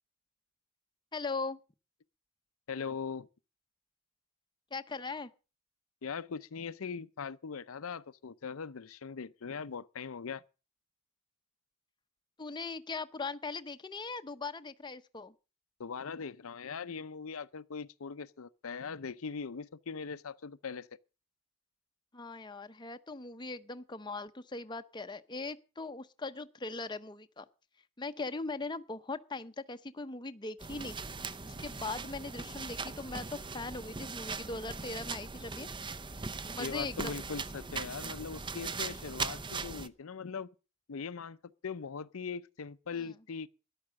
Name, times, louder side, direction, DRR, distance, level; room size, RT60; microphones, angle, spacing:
voice 1, 1.1-1.6 4.7-5.3 12.4-15.3 22.1-27.5 28.0-31.0 31.5-35.7 36.5-37.2, left 3 dB, 20° left, 0.7 m, -40 dB
voice 2, 2.7-3.3 6.0-10.4 15.8-20.9 36.6-40.5 40.9-41.4 41.6-43.5, left 5 dB, 80° left, 0.6 m, -40 dB
sound 1, 30.6-39.9, right 4 dB, 25° right, 0.6 m, -40 dB
13.5 x 10.5 x 6.3 m
head